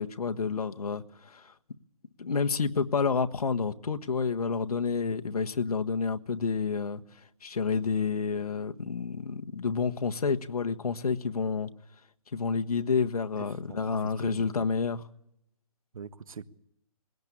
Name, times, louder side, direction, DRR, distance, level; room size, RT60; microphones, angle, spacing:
voice 1, 0.0-1.5 2.2-7.0 7.4-11.7 12.3-15.1, left 5 dB, 85° left, 1.5 m, -29 dB
voice 2, 13.4-14.4 15.9-16.4, right 6 dB, 70° right, 1.4 m, -43 dB
21.5 x 17.5 x 8.6 m
hypercardioid pair, 160°, 19 cm